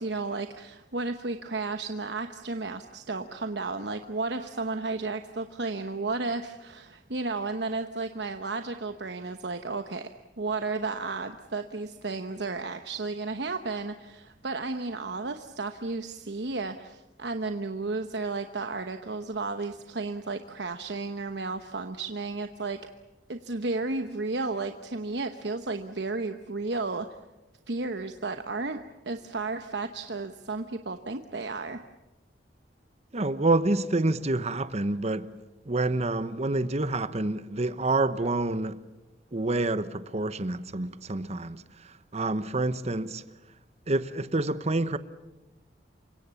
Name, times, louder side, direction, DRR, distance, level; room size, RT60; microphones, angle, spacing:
voice 1, 0.0-22.8 23.3-27.1 27.7-31.8, right 3 dB, 70° right, 1.1 m, -33 dB
voice 2, 33.1-35.3 35.6-38.8 39.3-43.2 43.9-45.0, right 2 dB, 40° right, 1.0 m, -28 dB
28.5 x 24.5 x 7.1 m
head